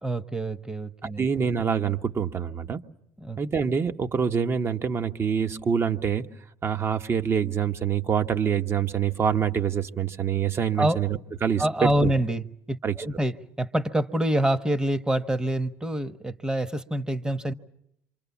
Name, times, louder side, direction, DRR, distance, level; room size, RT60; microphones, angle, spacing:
voice 1, 0.0-1.3 3.2-3.4 10.8-11.0 11.6-17.5, right 1 dB, 10° right, 1.2 m, -26 dB
voice 2, 1.0-2.8 3.4-6.3 6.6-12.1 12.8-12.9, right 7 dB, 35° right, 1.3 m, -26 dB
28.0 x 25.5 x 7.2 m
supercardioid pair, 75°, 7 cm